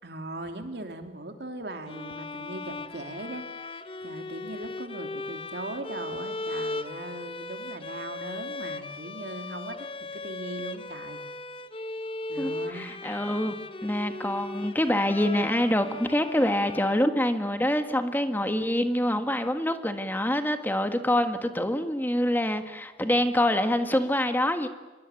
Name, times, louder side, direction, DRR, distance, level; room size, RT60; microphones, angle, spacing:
voice 1, 0.0-3.7 4.0-9.9 10.1-11.2 12.3-12.9, right 2 dB, 65° right, 5 dB, 2.9 m, -39 dB
Violin - D major, 1.9-17.5, left 2 dB, 30° left, 1.0 m, -38 dB
voice 2, 12.4-13.5 13.8-24.7, left 1 dB, 10° left, 8 dB, 1.6 m, -26 dB
25.5 x 22.5 x 9.2 m, 1.2 s
head